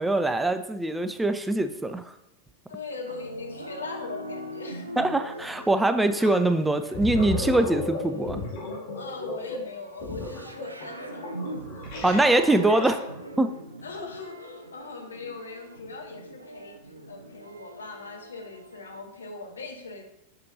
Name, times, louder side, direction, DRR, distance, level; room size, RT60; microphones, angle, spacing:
voice 1, 0.0-2.0 5.0-8.4 12.0-13.0 13.4-13.5, right 2 dB, 5° right, 9 dB, 0.4 m, -23 dB
voice 2, 2.7-4.9 8.9-11.5 13.8-16.7 17.1-20.0, left 4 dB, 70° left, 3 dB, 1.0 m, -40 dB
sound 1, 3.1-19.0, right 1 dB, 80° right, 0.6 m, -41 dB
Gurgling, 6.2-6.4 6.8-13.3, left 2 dB, 50° left, 2.3 m, -34 dB
7.5 x 6.0 x 2.7 m, 0.85 s
figure-of-eight pair, 90°, 0 cm